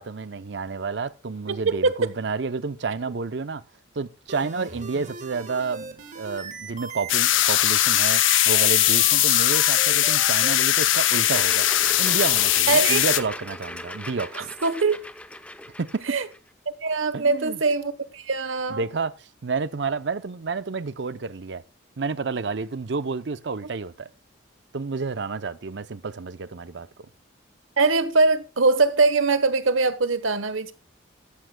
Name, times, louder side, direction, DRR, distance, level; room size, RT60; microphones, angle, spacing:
voice 1, 0.0-3.6 4.0-11.7 12.0-14.5 15.8-16.2 17.1-17.6 18.7-21.6 22.0-24.1 24.7-26.9, right 4 dB, 60° right, 0.6 m, -30 dB
voice 2, 1.5-2.0 12.7-13.0 14.4-15.0 16.1-16.3 16.8-18.8 27.8-30.7, right 3 dB, 80° right, 1.1 m, -22 dB
sound 1, 4.3-10.6, right 4 dB, 35° right, 1.5 m, -38 dB
sound 2, 7.1-13.2, left 13 dB, 75° left, 0.7 m, -20 dB
sound 3, 10.7-16.4, left 1 dB, 5° left, 0.6 m, -38 dB
14.0 x 13.0 x 2.2 m
head